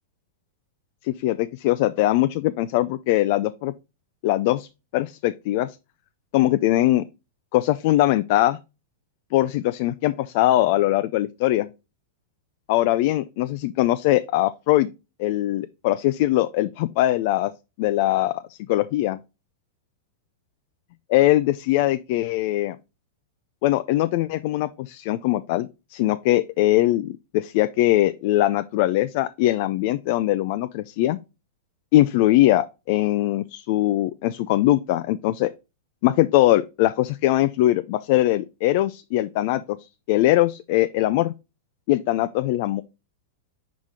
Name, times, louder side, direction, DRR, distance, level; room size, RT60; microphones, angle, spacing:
voice 1, 1.0-3.7 4.2-5.8 6.3-7.0 7.5-8.6 9.3-11.7 12.7-14.9 15.2-17.5 17.8-19.2 21.1-22.8 23.6-31.2 31.9-35.5 36.0-39.8 40.1-41.3 41.9-42.8, left 15 dB, 55° left, 0.4 m, -21 dB
5.7 x 4.9 x 3.6 m
hypercardioid pair, 105°, 0 cm